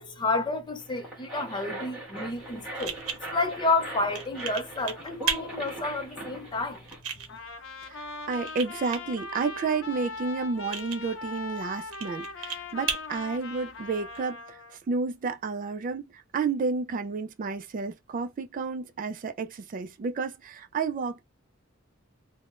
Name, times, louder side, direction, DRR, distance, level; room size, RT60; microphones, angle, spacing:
voice 1, 0.0-6.8, left 3 dB, 20° left, 0.5 m, -30 dB
sound 1, 0.8-7.0, right 1 dB, 5° right, 1.5 m, -40 dB
sound 2, 2.2-14.2, right 7 dB, 80° right, 0.7 m, -38 dB
Trumpet, 7.3-14.8, left 3 dB, 65° left, 0.7 m, -40 dB
voice 2, 7.9-14.6 14.9-21.2, right 4 dB, 40° right, 0.3 m, -31 dB
3.5 x 2.1 x 2.4 m
head